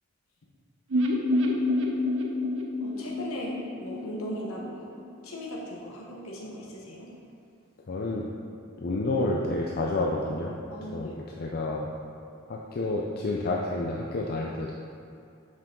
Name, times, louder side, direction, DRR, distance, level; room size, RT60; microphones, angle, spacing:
sound 1, 0.9-4.8 5.0-5.1 5.4-5.5, left 2 dB, 65° right, 0.8 m, -28 dB
voice 1, 2.8-4.9 5.2-7.1 10.7-11.2, equal, 75° left, -3 dB, 1.1 m, -38 dB
voice 2, 7.9-8.3 8.8-10.6 10.9-11.1 11.4-11.9 12.5-14.7, left 2 dB, 45° left, -2 dB, 0.5 m, -29 dB
7.3 x 5.8 x 3.8 m, 2.6 s
head